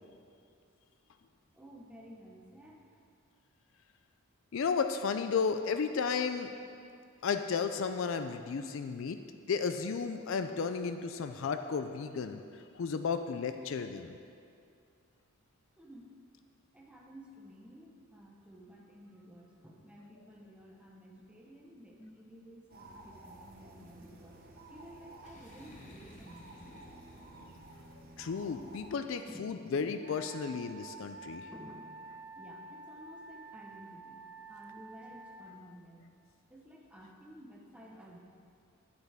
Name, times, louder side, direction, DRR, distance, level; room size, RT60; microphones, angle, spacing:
voice 1, 1.5-3.0 15.8-16.2 16.7-26.7 29.3-29.5 31.5-31.9 32.3-36.1 36.5-38.2, equal, 5° right, -2 dB, 0.9 m, -53 dB
voice 2, 4.5-6.5 7.2-9.2 9.5-14.2 28.2-31.5, left 5 dB, 60° left, 8 dB, 0.4 m, -33 dB
sound 1, 22.7-28.9, right 1 dB, 40° right, 1.0 m, -53 dB
Boom, 25.2-28.0, left 1 dB, 30° left, 1.0 m, -55 dB
Wind instrument woodwind instrument, 30.0-35.5, right 3 dB, 85° right, 1.0 m, -50 dB
9.6 x 9.3 x 3.5 m, 2.4 s
head